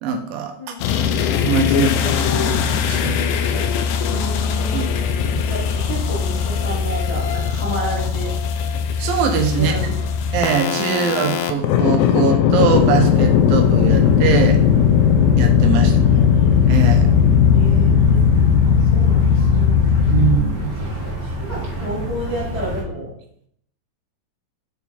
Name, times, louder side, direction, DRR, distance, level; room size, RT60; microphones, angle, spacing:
voice 1, 0.0-0.8 1.4-3.6 4.7-4.9 5.3-5.5 9.0-9.8 10.3-14.6 15.4-16.3 16.7-17.1 20.1-20.8, right 7 dB, 80° right, 5 dB, 2.6 m, -22 dB
voice 2, 0.6-1.3 4.1-4.8 5.4-8.3 9.5-9.9 15.8-16.2 17.5-18.2 18.6-19.8 21.0-23.1, equal, 25° left, -7 dB, 1.6 m, -31 dB
sound 1, 0.8-20.4, left 8 dB, 80° left, 1.9 m, -18 dB
sound 2, 12.7-22.8, equal, 40° right, 1.8 m, -28 dB
6.9 x 4.3 x 4.2 m, 0.67 s
omnidirectional pair, 4.1 m